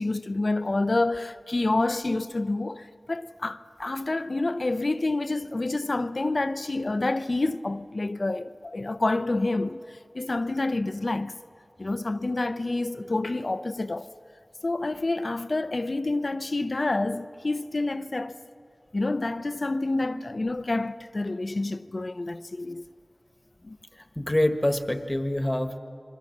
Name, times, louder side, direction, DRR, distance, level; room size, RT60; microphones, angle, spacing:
voice 1, 0.0-11.4 11.8-14.1 14.6-18.4 18.9-22.8 23.6-23.8, left 2 dB, 55° left, 0.7 m, -28 dB
voice 2, 24.2-25.8, left 1 dB, 20° left, 1.5 m, -25 dB
27.5 x 23.0 x 7.3 m
wide cardioid pair, 45°, 0 cm